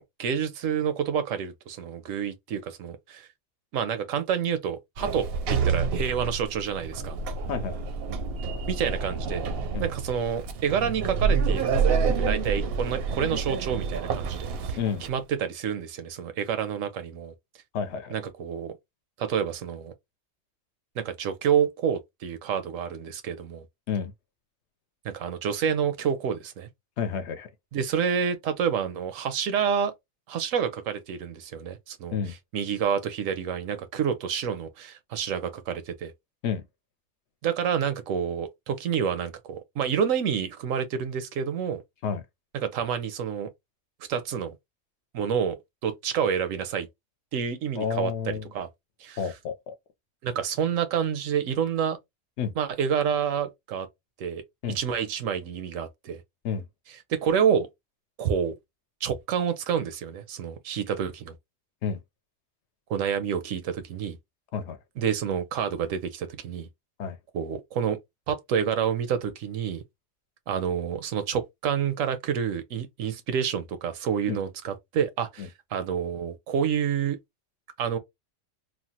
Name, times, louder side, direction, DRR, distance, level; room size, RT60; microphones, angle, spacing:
voice 1, 0.0-3.3 3.7-7.2 8.7-9.5 9.8-17.3 18.1-18.7 19.2-19.9 21.0-23.6 25.0-26.7 27.7-29.9 30.3-36.1 37.4-41.8 42.5-43.5 44.1-44.6 45.1-45.6 45.8-46.9 47.3-48.7 49.0-49.4 50.2-52.0 52.5-53.9 54.2-54.4 54.7-56.2 56.9-57.7 58.2-58.5 59.0-61.3 62.9-64.2 65.0-66.7 67.3-68.0 68.3-69.8 70.5-77.2 77.8-78.0, right 7 dB, 90° right, 1.0 m, -28 dB
Sliding door, 5.0-15.1, right 5 dB, 60° right, 0.7 m, -28 dB
voice 2, 7.5-7.8 9.7-9.9 14.8-15.0 17.7-18.2 23.9-24.1 27.0-27.5 32.1-32.3 36.4-36.6 42.0-42.2 47.8-48.5 49.2-49.7 52.4-52.5 54.6-54.8 56.4-56.7 61.8-62.0 64.5-64.8 67.0-67.2 74.3-74.4 75.4-75.5, left 7 dB, 65° left, 0.8 m, -30 dB
3.2 x 2.2 x 2.7 m
omnidirectional pair, 1.3 m